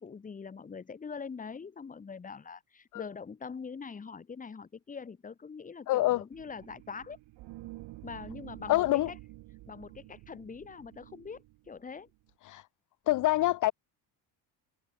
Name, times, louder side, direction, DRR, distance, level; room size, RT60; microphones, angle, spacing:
voice 1, 0.0-7.2 8.0-9.2 9.7-12.1, left 5 dB, 20° left, 1.4 m, -43 dB
voice 2, 5.9-6.2 8.7-9.1 12.5-12.6 13.1-13.7, left 17 dB, 45° left, 0.6 m, -26 dB
sound 1, 6.3-12.3, right 19 dB, 80° right, 5.3 m, -49 dB
cardioid pair, 145°, 43 cm